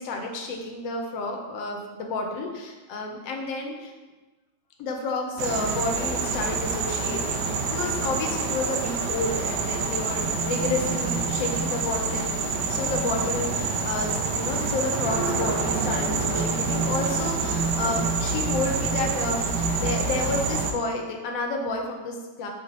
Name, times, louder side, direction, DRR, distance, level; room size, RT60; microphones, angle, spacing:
voice 1, 0.0-3.9 4.8-22.5, left 3 dB, 70° left, 2 dB, 0.8 m, -30 dB
sound 1, 5.4-20.7, right 4 dB, 70° right, 1.0 m, -27 dB
5.9 x 2.1 x 4.0 m, 1.2 s
omnidirectional pair, 2.1 m